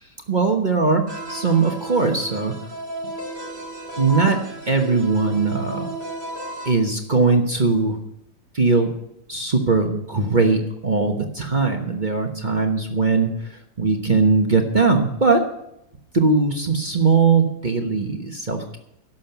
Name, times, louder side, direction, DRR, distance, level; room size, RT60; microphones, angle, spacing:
voice 1, 0.3-2.5 4.0-4.4 4.7-5.9 6.6-8.0 8.5-8.9 9.3-15.4 16.1-18.8, right 4 dB, 30° right, 3 dB, 1.2 m, -20 dB
sound 1, 1.1-6.7, right 2 dB, 80° right, 3.7 m, -33 dB
11.5 x 7.3 x 9.2 m, 0.80 s
omnidirectional pair, 1.8 m